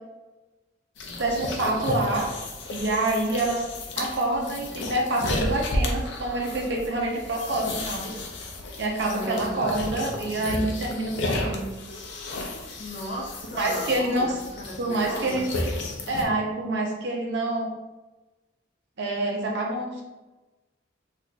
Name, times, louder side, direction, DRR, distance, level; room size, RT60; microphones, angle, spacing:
sound 1, 1.0-16.2, left 1 dB, 65° left, 0.5 m, -33 dB
voice 1, 1.2-2.3 2.7-3.6 4.0-8.1 8.8-11.7 13.6-14.4 14.8-15.5 16.1-17.7 19.0-20.0, right 2 dB, 60° right, 0 dB, 0.6 m, -27 dB
voice 2, 9.0-9.8 12.8-15.4, equal, 45° left, -4 dB, 0.9 m, -36 dB
3.9 x 2.5 x 2.3 m, 1.1 s
head